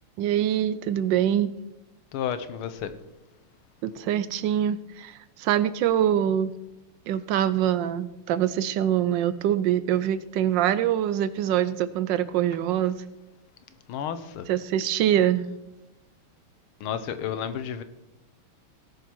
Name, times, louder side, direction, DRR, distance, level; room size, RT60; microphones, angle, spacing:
voice 1, 0.2-1.5 3.8-6.5 7.1-13.0 14.5-15.5, right 10 dB, 75° right, 1.1 m, -24 dB
voice 2, 2.1-2.9 13.9-14.5 16.8-17.8, left 8 dB, 75° left, 1.7 m, -31 dB
18.0 x 6.5 x 4.5 m
omnidirectional pair, 2.4 m